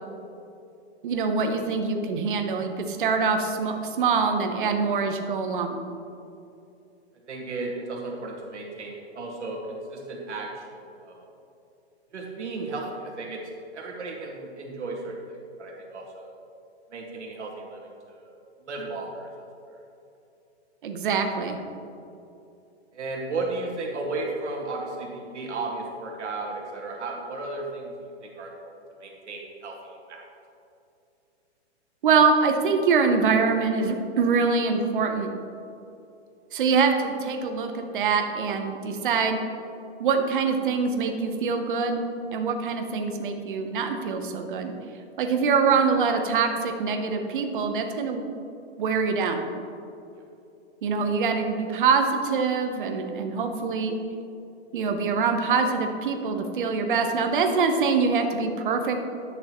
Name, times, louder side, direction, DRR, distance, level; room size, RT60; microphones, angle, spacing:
voice 1, 1.0-5.8 20.8-21.6 32.0-35.3 36.5-39.4 40.0-42.0 42.3-44.7 45.2-48.3 48.8-49.5 50.8-54.0 54.7-59.0, right 5 dB, 50° right, 5 dB, 0.9 m, -24 dB
voice 2, 7.3-11.3 12.1-13.4 13.7-16.4 16.9-17.8 18.1-18.3 18.7-19.5 22.9-27.9 28.2-28.7 29.0-30.2, right 3 dB, 85° right, -1 dB, 1.9 m, -34 dB
10.5 x 6.4 x 3.0 m, 2.7 s
hypercardioid pair, 165°, 34 cm